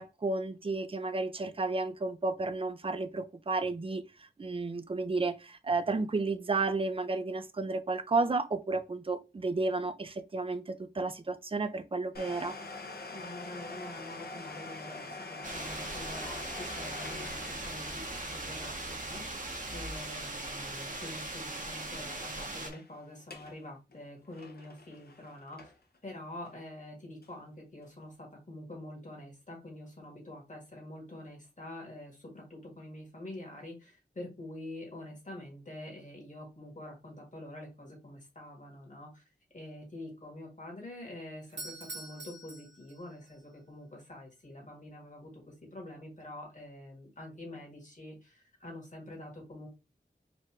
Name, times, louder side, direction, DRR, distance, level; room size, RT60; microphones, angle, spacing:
voice 1, 0.0-4.0 4.4-12.6, right 3 dB, 30° right, 0.4 m, -32 dB
Domestic sounds home sounds, 12.1-21.6 21.8-21.9 22.5-22.9 23.2-23.6 23.9-26.0 26.4-26.5 27.2-27.3, left 3 dB, 60° left, 0.8 m, -46 dB
voice 2, 13.1-19.2 19.7-25.7 26.0-39.2 39.5-49.7, left 1 dB, 45° left, 1.7 m, -46 dB
sound 1, 15.4-22.7, right 2 dB, 45° right, 0.9 m, -39 dB
Doorbell, 41.5-43.4, right 2 dB, 90° right, 0.9 m, -45 dB
4.3 x 2.6 x 3.0 m
wide cardioid pair, 45°, 18 cm